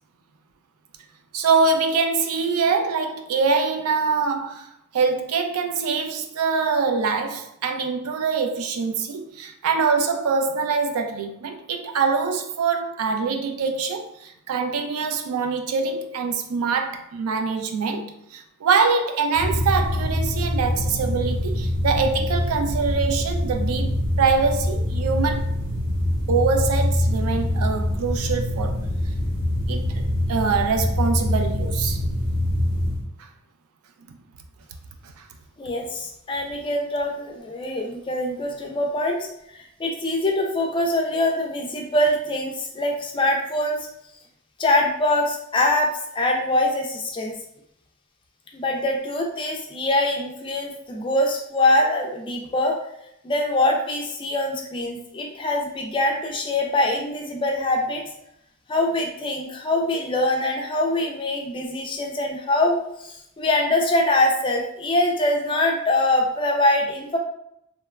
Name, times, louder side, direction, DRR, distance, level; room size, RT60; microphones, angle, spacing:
voice 1, 1.3-25.5 26.3-28.9 29.7-30.0 30.3-32.0, right 5 dB, 85° right, 0.4 m, -24 dB
sound 1, 19.3-33.0, left 1 dB, 55° right, 0.9 m, -24 dB
voice 2, 35.6-39.3 39.5-43.9 44.6-47.4 48.5-52.8 53.2-58.0 58.7-67.2, left 1 dB, 25° left, 0.3 m, -23 dB
2.9 x 2.1 x 2.2 m
head